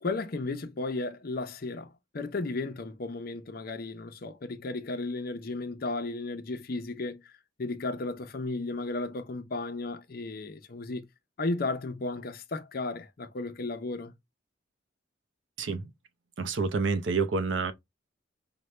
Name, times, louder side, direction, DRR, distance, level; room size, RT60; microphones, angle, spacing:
voice 1, 0.0-11.1 11.4-14.1, left 2 dB, 50° left, 0.6 m, -34 dB
voice 2, 15.6-15.9 16.4-17.7, right 4 dB, 75° right, 0.6 m, -28 dB
5.1 x 2.2 x 3.1 m
head